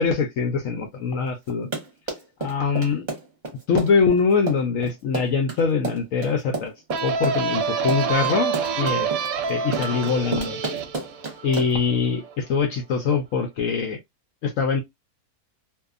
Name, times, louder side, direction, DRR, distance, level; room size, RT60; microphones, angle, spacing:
voice 1, 0.0-1.7 2.4-3.1 3.7-6.7 7.0-9.1 9.5-10.6 11.4-14.0 14.4-14.8, left 5 dB, 65° left, 0.9 m, -23 dB
Run, 1.5-11.9, right 3 dB, 30° right, 0.9 m, -31 dB
sound 1, 6.9-12.3, right 5 dB, 75° right, 1.0 m, -27 dB
2.7 x 2.3 x 2.4 m
omnidirectional pair, 1.6 m